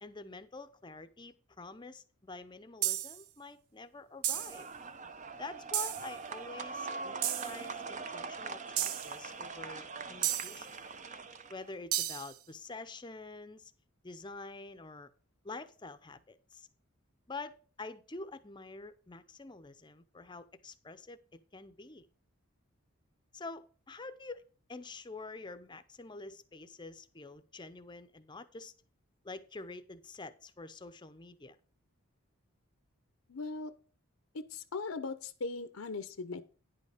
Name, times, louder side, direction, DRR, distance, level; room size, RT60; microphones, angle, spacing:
voice 1, 0.0-4.7 5.4-10.7 11.5-13.7 14.0-15.1 15.4-16.7 17.3-21.2 21.5-22.1 23.3-24.4 24.7-28.7 29.2-31.6, left 3 dB, 20° left, 12 dB, 0.6 m, -47 dB
sound 1, 2.8-3.2 4.2-4.6 5.7-6.1 7.2-7.6 8.8-9.1 10.2-10.6 11.9-12.3, right 12 dB, 85° right, 0.6 m, -33 dB
sound 2, 4.3-11.7, right 4 dB, 35° right, 0.6 m, -43 dB
voice 2, 33.3-33.7 34.5-36.4, left 3 dB, 70° left, 12 dB, 0.7 m, -39 dB
10.0 x 5.4 x 5.1 m, 0.39 s
head